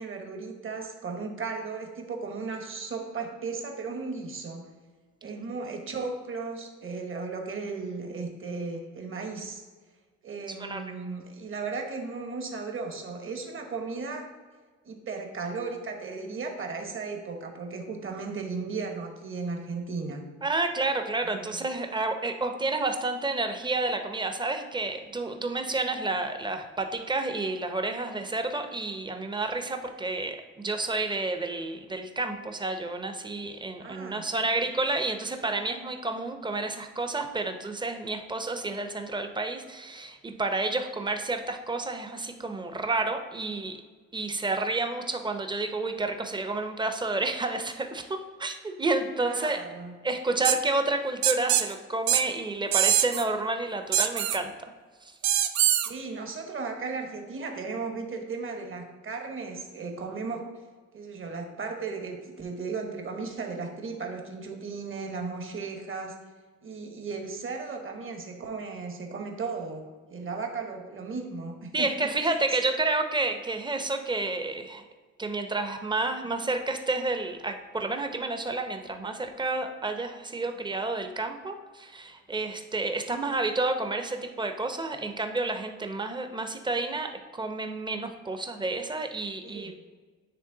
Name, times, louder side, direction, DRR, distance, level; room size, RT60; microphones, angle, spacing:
voice 1, 0.0-4.7 5.2-9.6 10.2-14.3 14.8-20.2 21.2-21.6 33.8-34.2 49.2-49.9 55.8-60.4 60.9-66.2 66.6-72.1 72.5-72.6 89.4-89.7, right 4 dB, 45° right, 3 dB, 1.1 m, -36 dB
voice 2, 20.4-43.8 44.1-49.6 50.0-54.7 55.0-55.1 71.7-74.8 75.2-89.7, right 2 dB, 15° right, 6 dB, 0.6 m, -30 dB
sound 1, 50.4-50.6 51.2-51.6 52.1-52.2 52.7-53.2 53.9-54.4 55.2-55.9, right 11 dB, 70° right, 0.5 m, -23 dB
9.4 x 3.2 x 3.8 m, 1.4 s
cardioid pair, 90°, 30 cm